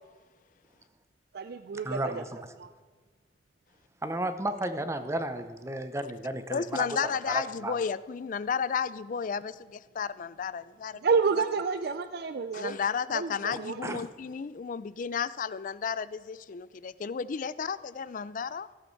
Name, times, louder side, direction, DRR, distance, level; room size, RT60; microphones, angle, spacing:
voice 1, 1.3-2.2 2.6-2.7 11.0-12.8 13.1-14.0, right 5 dB, 60° right, 9 dB, 0.4 m, -29 dB
voice 2, 1.8-2.4 4.0-6.9 7.3-7.8 13.8-14.1, right 1 dB, 15° right, 9 dB, 0.7 m, -33 dB
voice 3, 6.5-11.0 12.5-18.7, left 6 dB, 45° left, 17 dB, 0.4 m, -33 dB
15.0 x 7.9 x 4.5 m, 1.5 s
head